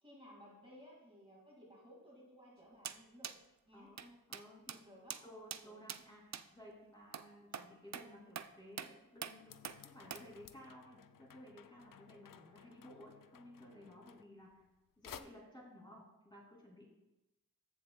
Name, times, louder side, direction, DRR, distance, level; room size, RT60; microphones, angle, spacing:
voice 1, 0.0-3.3 3.7-3.9 4.7-5.2 5.6-5.8, equal, 15° right, -5 dB, 2.4 m, -58 dB
sound 1, 2.8-3.0 3.2-3.4 4.0-4.1 4.3-4.4 4.7-4.8 5.1-5.2 5.5-5.6 5.9-6.0 6.3-6.4 7.1-7.3 7.5-7.7 7.9-8.1 8.4-8.5 8.8-8.9 9.2-9.3 9.6-9.8 10.1-10.2, right 8 dB, 50° right, 0.4 m, -44 dB
voice 2, 3.7-14.6 15.0-16.9, equal, 10° left, -3 dB, 2.8 m, -56 dB
sound 2, 9.5-14.8 15.0-15.2, left 9 dB, 60° left, 0.5 m, -57 dB
14.0 x 7.2 x 2.3 m, 0.97 s
wide cardioid pair, 95°, 37 cm